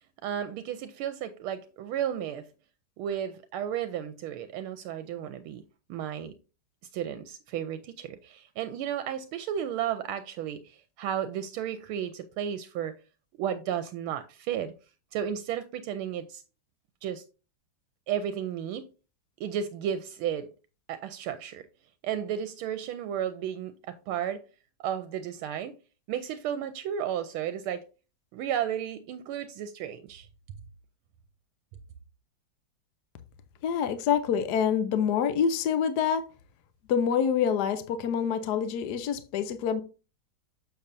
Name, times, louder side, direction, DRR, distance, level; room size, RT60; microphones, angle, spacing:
voice 1, 0.2-2.5 3.0-5.6 5.9-6.3 6.9-12.9 13.4-14.7 15.1-16.4 17.0-17.2 18.1-18.8 19.4-20.5 20.9-21.6 22.0-24.4 24.8-25.7 26.1-27.9 28.3-30.3, right 9 dB, 80° right, 1.4 m, -33 dB
voice 2, 33.6-36.2 36.9-39.8, left 7 dB, 70° left, 1.0 m, -26 dB
7.0 x 6.7 x 2.6 m
omnidirectional pair, 2.4 m